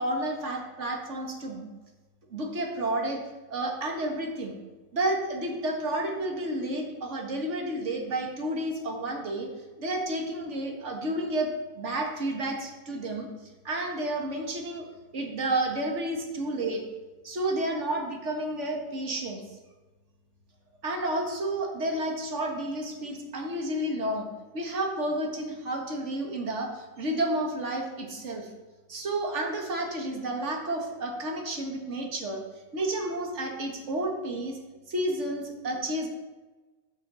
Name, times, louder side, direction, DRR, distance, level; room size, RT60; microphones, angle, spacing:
voice 1, 0.0-1.7 2.3-3.2 3.5-4.6 4.9-9.5 9.8-13.3 13.6-14.9 15.1-16.8 17.2-19.4 20.8-24.3 24.5-28.5 28.9-32.4 32.7-34.6 34.9-36.1, right 1 dB, 35° right, 1 dB, 1.2 m, -31 dB
13.0 x 6.3 x 5.6 m, 1.2 s
omnidirectional pair, 3.4 m